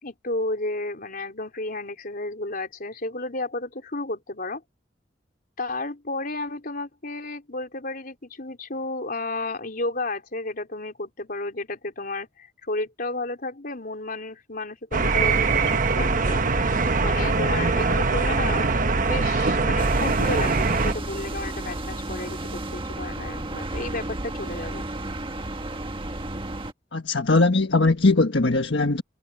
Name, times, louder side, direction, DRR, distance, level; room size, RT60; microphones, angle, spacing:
voice 1, 0.0-4.6 5.6-16.4 17.0-24.9, left 2 dB, 55° left, 4.1 m, -32 dB
sound 1, 14.9-20.9, right 3 dB, 50° right, 1.0 m, -22 dB
sound 2, 19.8-26.7, right 1 dB, 30° right, 1.5 m, -33 dB
voice 2, 26.9-29.0, left 3 dB, 85° left, 1.5 m, -20 dB
head